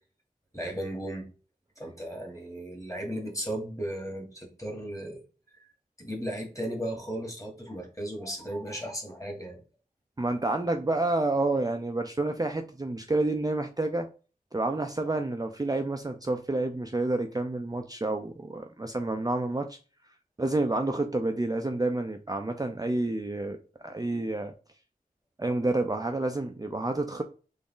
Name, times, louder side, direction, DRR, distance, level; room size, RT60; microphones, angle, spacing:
voice 1, 0.5-1.3 1.8-5.2 5.6-5.7 6.0-9.6, right 1 dB, 20° left, 2.0 m, -35 dB
voice 2, 10.2-14.1 14.5-19.8 20.4-23.6 23.8-24.5 25.4-27.2, right 2 dB, 25° right, 0.5 m, -29 dB
3.9 x 3.5 x 3.8 m
wide cardioid pair, 55°, 16 cm